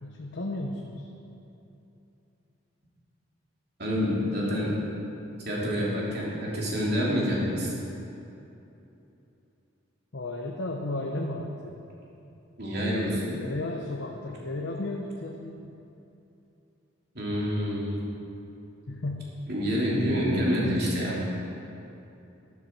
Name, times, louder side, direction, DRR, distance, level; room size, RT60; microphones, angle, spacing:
voice 1, 0.0-1.1 10.1-11.8 12.8-15.6 18.9-19.2 19.8-20.9, left 2 dB, 60° left, 1 dB, 0.8 m, -35 dB
voice 2, 3.8-4.7 5.4-7.7 12.6-13.4 17.1-18.0 19.5-21.2, equal, 50° right, -5 dB, 3.0 m, -27 dB
12.0 x 11.5 x 4.6 m, 2.9 s
head